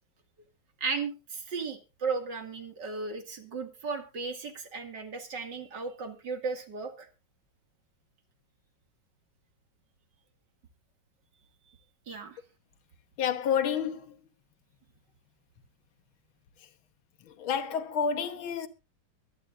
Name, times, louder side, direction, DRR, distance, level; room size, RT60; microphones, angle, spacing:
voice 1, 0.8-7.1 12.1-12.4, right 4 dB, 60° right, 2.7 m, -35 dB
voice 2, 13.2-14.2 16.6-16.7 17.2-18.7, left 7 dB, 85° left, 2.0 m, -29 dB
22.5 x 10.5 x 2.5 m
omnidirectional pair, 2.2 m